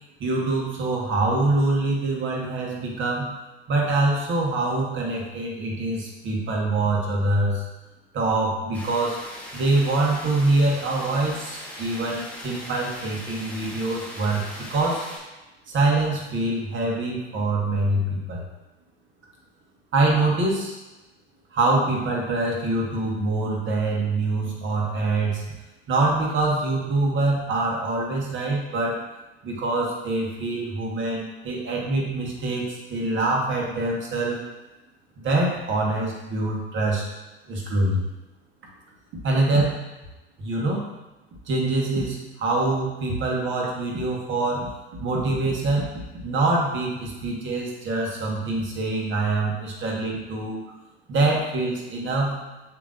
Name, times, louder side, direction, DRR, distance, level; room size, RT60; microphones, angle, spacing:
voice 1, 0.2-3.3 3.7-7.6 8.1-9.2 9.5-15.1 15.7-18.4 19.9-20.8 21.5-25.5 25.9-29.0 29.4-34.4 35.2-37.1 37.5-38.0 39.2-39.9 40.4-40.9 41.5-44.7 45.0-50.6 51.1-52.4, right 2 dB, 35° right, -2 dB, 1.4 m, -24 dB
sound 1, 8.7-15.2, left 1 dB, 5° left, 1.3 m, -40 dB
6.7 x 3.0 x 2.5 m, 1.1 s
hypercardioid pair, 75°, 32 cm